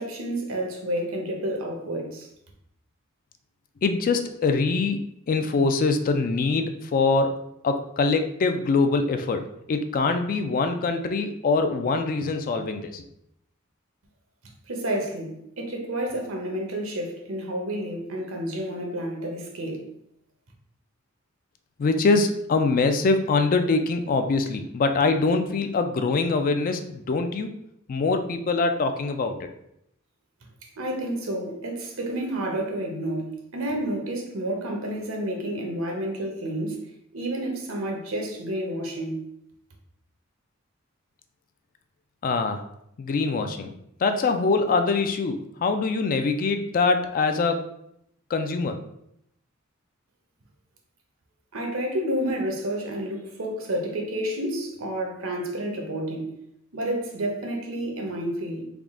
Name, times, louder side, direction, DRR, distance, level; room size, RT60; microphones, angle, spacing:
voice 1, 0.0-2.3 14.7-19.9 30.8-39.2 51.5-56.3 56.7-58.6, right 1 dB, 75° right, 0.8 m, -30 dB
voice 2, 3.8-5.0 5.3-7.4 7.6-9.4 9.7-13.0 21.8-27.5 27.9-29.5 42.2-42.6 43.0-43.7 44.0-47.6 48.3-48.8, left 3 dB, 40° left, 0.3 m, -23 dB
3.5 x 2.3 x 3.6 m
head